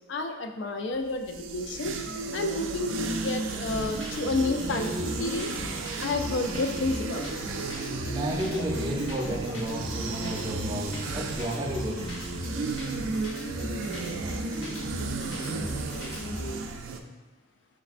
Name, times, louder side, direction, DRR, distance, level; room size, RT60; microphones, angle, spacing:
voice 1, 0.1-1.9 2.3-5.5 6.0-7.2, left 3 dB, 65° left, 6 dB, 0.3 m, -30 dB
sound 1, 1.1-17.0, right 4 dB, 80° right, 0.4 m, -34 dB
sound 2, 3.7-16.5, equal, 90° left, 1.2 m, -36 dB
voice 2, 8.1-12.1, right 1 dB, 25° right, -1 dB, 0.5 m, -32 dB
5.1 x 3.2 x 2.4 m, 1.2 s
head